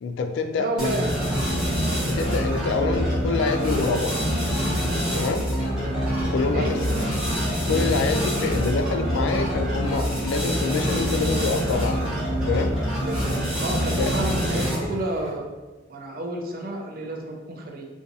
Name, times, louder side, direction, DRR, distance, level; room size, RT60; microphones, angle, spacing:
voice 1, 0.0-0.9 2.1-4.1 5.1-5.4 6.2-7.0 7.7-12.0 12.5-12.7 13.9-14.0, left 4 dB, 60° left, 6 dB, 0.3 m, -26 dB
voice 2, 0.6-1.4 2.8-3.0 6.5-6.7 13.0-13.3 13.6-15.4 15.9-17.9, right 2 dB, 45° right, 2 dB, 0.5 m, -30 dB
sound 1, 0.8-15.0, equal, 5° right, 1.2 m, -25 dB
sound 2, 1.6-15.3, equal, 65° right, 0.9 m, -43 dB
3.8 x 2.3 x 2.6 m, 1.3 s
head